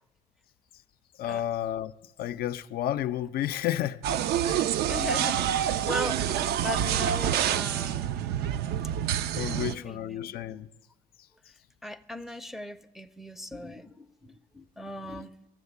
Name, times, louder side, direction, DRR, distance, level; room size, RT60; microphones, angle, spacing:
voice 1, 1.2-1.9 2.2-4.0 4.4-4.7 9.4-10.7, left 12 dB, 65° left, 0.4 m, -31 dB
sound 1, 4.0-9.8, right 10 dB, 70° right, 0.4 m, -27 dB
voice 2, 4.9-5.5 5.8-8.2 9.5-10.4 11.8-15.3, left 1 dB, ahead, 0.5 m, -38 dB
13.5 x 7.2 x 8.1 m
cardioid pair, 110°, 17 cm